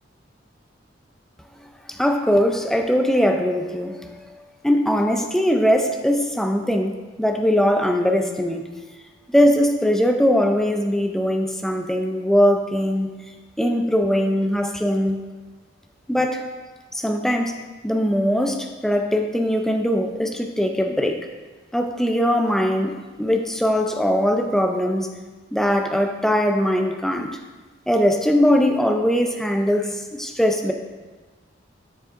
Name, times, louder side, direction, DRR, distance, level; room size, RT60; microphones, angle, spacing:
voice 1, 1.9-8.7 9.3-13.2 13.6-15.2 16.1-16.4 16.9-17.6 17.8-21.2 21.7-25.1 25.5-27.4 27.9-30.7, equal, ahead, 4 dB, 0.4 m, -21 dB
7.2 x 6.9 x 2.5 m, 1.3 s
head